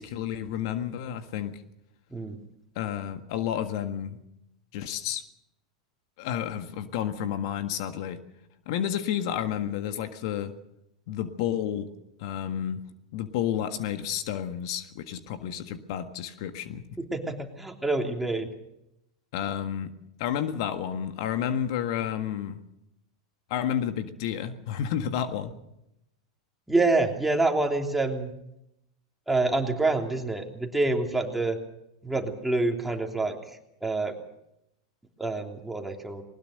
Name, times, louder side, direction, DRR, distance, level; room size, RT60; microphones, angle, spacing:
voice 1, 0.0-1.6 2.7-4.2 4.7-5.2 6.2-8.2 8.6-10.5 11.1-11.9 12.2-12.8 13.1-16.8 19.3-19.9 20.2-22.6 23.5-25.5, left 9 dB, 60° left, 9 dB, 1.6 m, -31 dB
voice 2, 17.0-18.5 26.7-28.3 29.3-31.6 32.0-33.4 33.8-34.1 35.2-36.2, right 2 dB, 5° right, 3 dB, 3.1 m, -27 dB
20.5 x 19.5 x 6.7 m, 0.82 s
hypercardioid pair, 100°, 3 cm